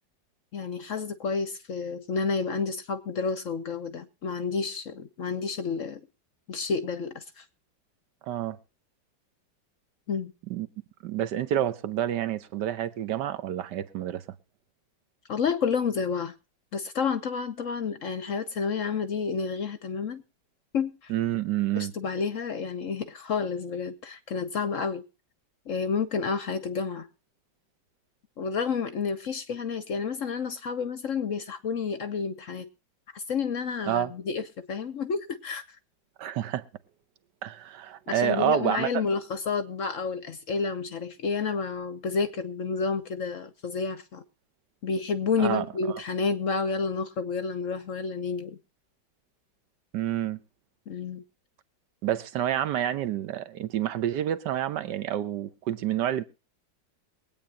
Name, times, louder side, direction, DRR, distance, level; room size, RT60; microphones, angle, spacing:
voice 1, 0.5-6.0 6.5-7.4 10.1-10.3 15.3-16.3 16.7-20.2 20.7-21.1 21.8-25.0 25.7-27.1 28.4-32.7 33.1-35.6 38.1-44.2 44.8-48.6 50.9-51.2, left 5 dB, 60° left, 0.9 m, -30 dB
voice 2, 8.2-8.6 10.5-10.7 11.0-14.2 21.1-21.9 33.9-34.1 36.2-36.6 37.4-38.9 45.4-45.6 49.9-50.4 52.0-56.2, right 11 dB, 70° right, 1.4 m, -28 dB
22.5 x 8.9 x 2.8 m
omnidirectional pair, 2.0 m